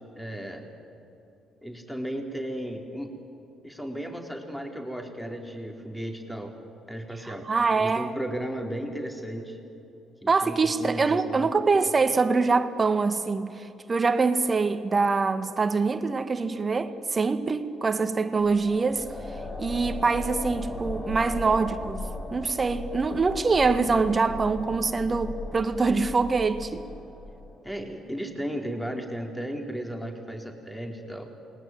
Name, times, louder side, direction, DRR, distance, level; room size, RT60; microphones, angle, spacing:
voice 1, 0.2-0.6 1.6-3.2 3.6-6.5 6.9-7.5 7.8-9.6 10.2-11.5 27.6-31.3, equal, 5° left, 4.1 m, -35 dB
voice 2, 7.2-8.1 10.3-19.1 19.6-26.9, right 4 dB, 35° right, 1.8 m, -24 dB
sound 1, 18.4-27.7, left 2 dB, 30° left, 4.8 m, -37 dB
28.5 x 21.0 x 9.3 m
hypercardioid pair, 45°, 0 cm